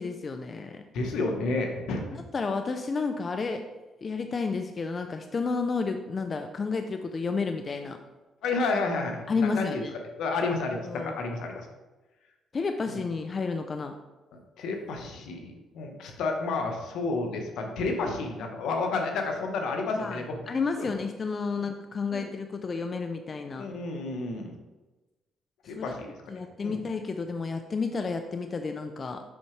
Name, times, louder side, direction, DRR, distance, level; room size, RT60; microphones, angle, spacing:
voice 1, 0.0-0.8 2.1-3.6 4.0-8.0 9.3-9.9 10.9-11.2 12.5-13.9 19.9-23.7 25.7-25.9 26.3-29.2, left 4 dB, 40° left, 6 dB, 0.5 m, -31 dB
voice 2, 0.9-2.2 8.4-9.8 10.2-11.7 12.9-13.0 14.3-20.4 20.8-20.9 21.5-21.7 22.1-22.3 23.6-24.5 25.6-26.1 26.3-26.9, left 3 dB, 80° left, 3 dB, 1.1 m, -31 dB
7.1 x 5.7 x 3.3 m, 1.1 s
cardioid pair, 90°, 0 cm